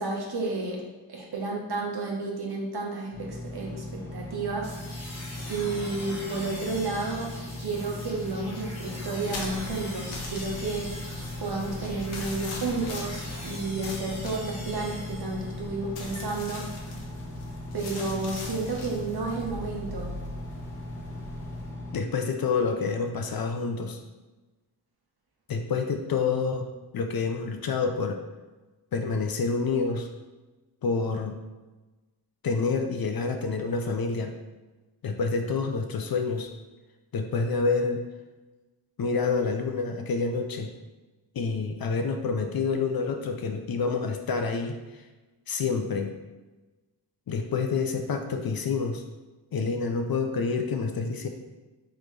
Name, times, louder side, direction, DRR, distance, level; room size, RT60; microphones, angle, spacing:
voice 1, 0.0-5.1 5.5-7.3 7.6-16.7 17.7-20.1, right 3 dB, 50° right, -2 dB, 1.2 m, -32 dB
Engine, 3.1-22.0, left 1 dB, 5° left, 1.3 m, -39 dB
sound 1, 4.6-15.8, left 1 dB, 30° left, 1.2 m, -43 dB
sound 2, 9.3-21.7, left 2 dB, 80° left, 0.9 m, -41 dB
voice 2, 21.9-24.0 25.5-26.7 26.9-28.2 28.9-30.1 30.8-31.4 32.4-34.3 35.0-36.5 37.1-38.0 39.0-40.7 41.3-44.8 45.5-46.2 47.3-49.0 49.5-51.3, left 4 dB, 50° left, 5 dB, 0.6 m, -28 dB
3.7 x 3.3 x 3.3 m, 1.2 s
cardioid pair, 55°, 49 cm